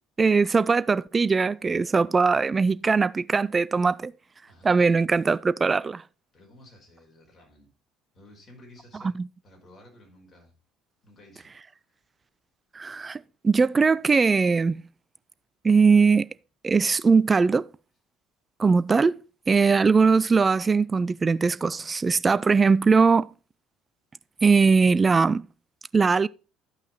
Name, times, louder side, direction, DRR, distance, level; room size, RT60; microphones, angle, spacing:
voice 1, 0.2-4.1 4.6-6.0 12.8-14.8 15.6-16.3 16.6-17.7 18.6-19.2 19.5-23.3 24.4-25.4 25.9-26.3, right 4 dB, 25° right, 0.4 m, -20 dB
voice 2, 6.3-7.7 8.1-9.2 9.4-10.5 11.0-11.5, left 1 dB, 40° left, 5.3 m, -53 dB
12.0 x 5.7 x 4.2 m
figure-of-eight pair, 60°, 0 cm